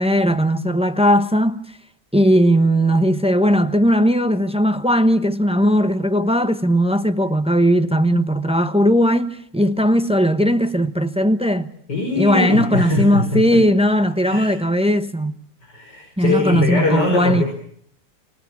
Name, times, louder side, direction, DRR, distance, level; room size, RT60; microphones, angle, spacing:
voice 1, 0.0-1.6 2.1-11.7 12.2-15.3 16.2-17.4, equal, 5° right, 0.7 m, -18 dB
voice 2, 11.9-13.6 14.2-14.5 15.6-17.4, left 3 dB, 85° left, 5.7 m, -22 dB
29.0 x 19.0 x 7.4 m
omnidirectional pair, 1.8 m